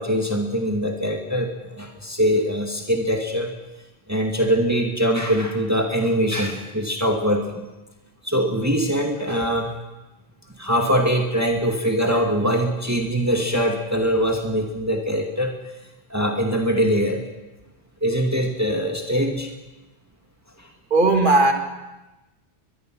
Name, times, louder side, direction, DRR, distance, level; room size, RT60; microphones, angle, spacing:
voice 1, 0.0-3.5 4.1-7.7 8.2-9.7 10.6-15.5 16.1-17.3 18.0-19.5 20.6-20.7, equal, 15° right, 2 dB, 2.2 m, -22 dB
voice 2, 20.9-21.5, right 2 dB, 50° right, 4 dB, 2.5 m, -16 dB
22.5 x 22.0 x 6.2 m, 1.1 s
omnidirectional pair, 1.1 m